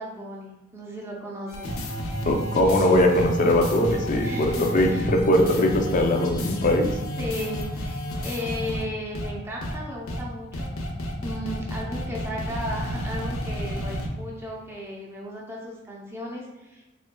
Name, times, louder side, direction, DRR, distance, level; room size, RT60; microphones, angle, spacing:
voice 1, 0.0-1.8 4.2-5.1 7.1-10.7 11.2-16.9, equal, 10° right, -3 dB, 0.5 m, -35 dB
sound 1, 1.5-8.8 9.1-9.3 9.6-9.7 10.1-10.2 10.5-14.1, equal, 85° left, 0.7 m, -31 dB
voice 2, 2.3-6.9, left 1 dB, 40° left, 3 dB, 0.5 m, -21 dB
4.2 x 3.3 x 2.2 m, 1.0 s
head